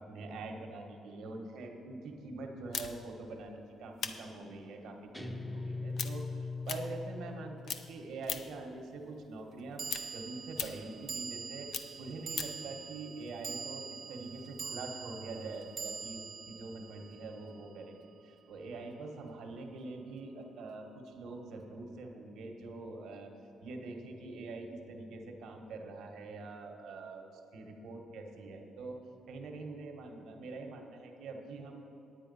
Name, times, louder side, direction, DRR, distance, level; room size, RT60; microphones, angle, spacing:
voice 1, 0.0-9.8 10.1-11.7 12.0-18.0 18.2-23.3 23.6-27.3 27.5-29.0 29.3-31.8, right 3 dB, 80° right, 2 dB, 1.3 m, -44 dB
sound 1, 2.7-7.4 7.6-8.7 9.0-12.7, left 7 dB, 65° left, 0.6 m, -41 dB
Guitar, 5.1-7.7, left 3 dB, 10° left, 0.8 m, -40 dB
sound 2, 7.7-7.8 9.8-18.2, right 5 dB, 45° right, 0.3 m, -44 dB
9.8 x 9.0 x 5.4 m, 2.9 s
cardioid pair, 90°, 0 cm